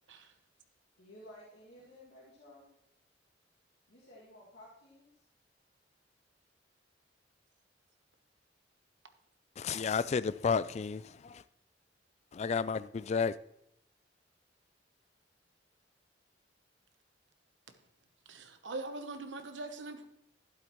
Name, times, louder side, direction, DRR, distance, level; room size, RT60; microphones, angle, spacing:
voice 1, 1.0-2.7 3.9-5.2, left 1 dB, 70° left, 2.5 m, -55 dB
voice 2, 9.6-11.4 12.3-13.4, left 5 dB, 35° left, 0.3 m, -32 dB
voice 3, 18.3-20.0, right 2 dB, 85° right, 1.0 m, -42 dB
11.5 x 11.5 x 3.1 m
head